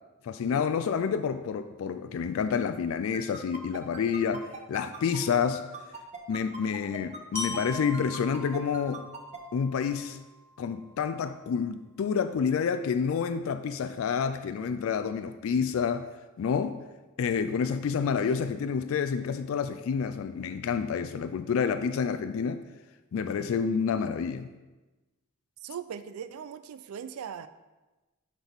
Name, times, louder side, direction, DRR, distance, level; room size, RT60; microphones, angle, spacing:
voice 1, 0.2-5.6 6.3-9.0 9.5-10.2 10.6-16.1 16.4-16.8 17.2-22.6 23.1-24.5, left 6 dB, 70° left, 10 dB, 0.3 m, -29 dB
sound 1, 3.1-9.4, right 3 dB, 30° right, 0.7 m, -41 dB
Glockenspiel, 7.3-11.3, left 2 dB, 15° left, 0.7 m, -41 dB
voice 2, 25.6-27.5, right 8 dB, 85° right, 12 dB, 0.4 m, -39 dB
10.0 x 4.0 x 3.5 m, 1.1 s
head